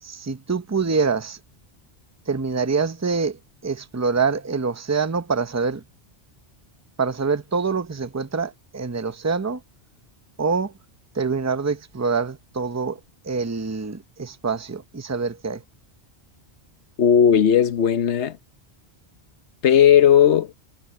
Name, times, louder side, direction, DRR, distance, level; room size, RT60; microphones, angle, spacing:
voice 1, 0.0-1.4 2.3-5.8 7.0-9.6 10.4-10.7 11.1-15.6, right 4 dB, 15° right, 0.8 m, -25 dB
voice 2, 17.0-18.4 19.6-20.5, left 9 dB, 90° left, 1.2 m, -16 dB
omnidirectional pair, 1.1 m